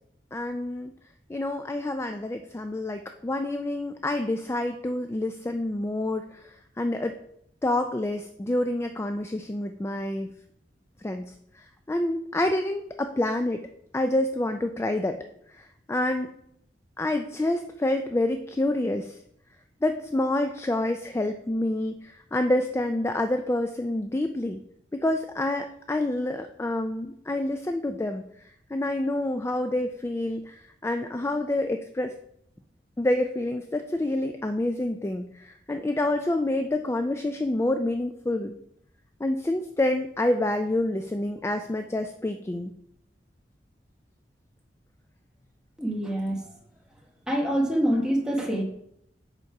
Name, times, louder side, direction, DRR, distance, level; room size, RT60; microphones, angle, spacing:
voice 1, 0.3-0.9 1.3-7.2 7.6-10.3 11.0-13.6 13.9-15.2 15.5-16.3 17.0-19.2 19.8-24.6 24.9-28.2 28.7-32.1 33.0-38.5 39.2-42.7, left 1 dB, 15° left, 7 dB, 0.3 m, -28 dB
voice 2, 45.8-46.4 47.3-48.6, equal, 5° right, 0 dB, 1.3 m, -25 dB
7.1 x 5.2 x 4.7 m, 0.73 s
head